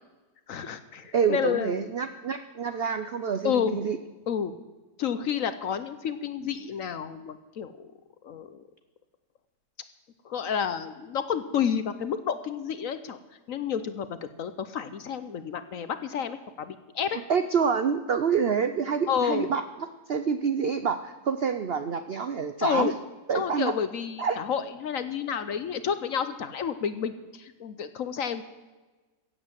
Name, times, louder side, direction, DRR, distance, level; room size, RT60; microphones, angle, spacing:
voice 1, 0.5-1.9 3.4-3.8 4.3-4.5 5.0-7.9 8.2-8.6 10.2-13.2 13.5-17.2 19.1-19.5 22.6-22.9 23.3-28.4, left 7 dB, 60° left, 11 dB, 1.0 m, -30 dB
voice 2, 1.1-4.0 17.1-19.6 20.1-22.9 23.3-23.7 24.2-24.4, right 6 dB, 75° right, 9 dB, 0.5 m, -27 dB
16.0 x 8.3 x 7.5 m, 1.2 s
omnidirectional pair, 1.9 m